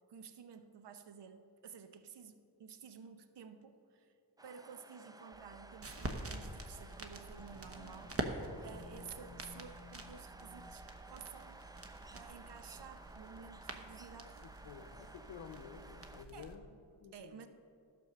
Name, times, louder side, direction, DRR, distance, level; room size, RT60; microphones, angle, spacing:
voice 1, 0.1-4.1 4.4-8.2 8.6-11.6 12.1-14.5 16.3-16.5 17.1-17.5, right 7 dB, 70° right, 9 dB, 0.8 m, -53 dB
sound 1, 4.4-16.3, right 2 dB, 10° right, 0.4 m, -56 dB
sound 2, 5.3-16.6, right 2 dB, 30° right, 1.0 m, -47 dB
sound 3, 7.4-12.4 12.9-13.0, left 4 dB, 20° left, 1.7 m, -58 dB
voice 2, 14.2-17.5, left 7 dB, 85° left, 3 dB, 0.7 m, -52 dB
11.5 x 5.4 x 6.6 m, 2.4 s
cardioid pair, 60°, 43 cm